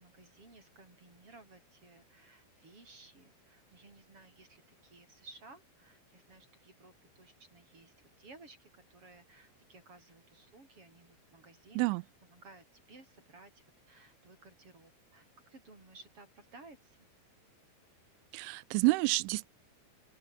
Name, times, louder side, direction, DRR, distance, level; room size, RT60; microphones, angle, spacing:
voice 1, 0.0-12.0 12.3-17.1, right 3 dB, 30° right, 7.7 m, -57 dB
voice 2, 18.3-19.5, right 24 dB, 85° right, 2.9 m, -29 dB
open air
omnidirectional pair, 5.6 m